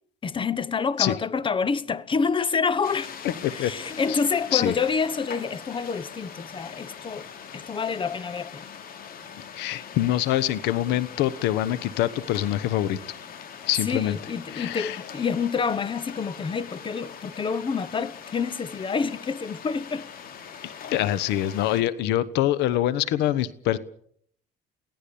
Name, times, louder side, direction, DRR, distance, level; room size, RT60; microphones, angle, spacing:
voice 1, 0.2-3.1 3.5-8.7 13.9-20.1, left 5 dB, 30° left, 1.1 m, -28 dB
sound 1, 2.8-21.8, left 7 dB, 60° left, 3.0 m, -42 dB
voice 2, 9.5-13.0 13.7-14.2 14.5-15.0 20.6-23.8, left 13 dB, 90° left, 1.1 m, -25 dB
23.5 x 17.0 x 7.0 m
cardioid pair, 110°, 17 cm